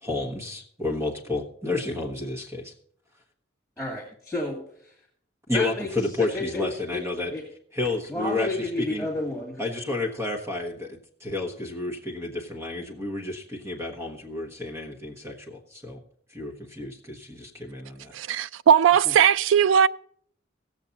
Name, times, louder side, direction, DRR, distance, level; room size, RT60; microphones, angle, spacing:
voice 1, 0.0-2.7 5.5-7.3 7.7-9.1 9.6-16.0 16.3-18.1, left 2 dB, 15° right, 1.3 m, -31 dB
voice 2, 3.8-4.9 5.5-6.7 6.9-7.0 7.3-7.4 8.1-9.6 19.0-19.1, left 2 dB, 5° left, 2.2 m, -31 dB
voice 3, 18.1-19.9, right 8 dB, 80° right, 0.3 m, -18 dB
17.0 x 7.2 x 4.0 m
head